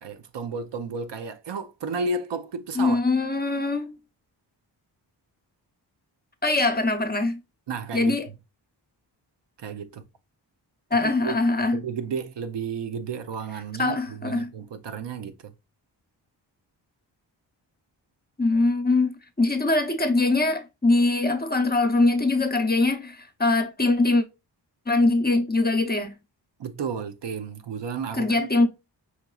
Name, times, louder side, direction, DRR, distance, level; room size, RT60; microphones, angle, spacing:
voice 1, 0.0-3.0 7.7-8.1 9.6-10.0 11.2-11.3 11.7-15.5 26.6-28.5, right 4 dB, 65° right, 0.7 m, -32 dB
voice 2, 2.7-4.0 6.4-7.4 7.9-8.3 10.9-11.8 13.8-14.5 18.4-19.1 19.4-24.2 24.9-26.2 28.1-28.7, left 2 dB, 20° left, 0.7 m, -22 dB
5.6 x 2.9 x 2.3 m
cardioid pair, 60°, 45 cm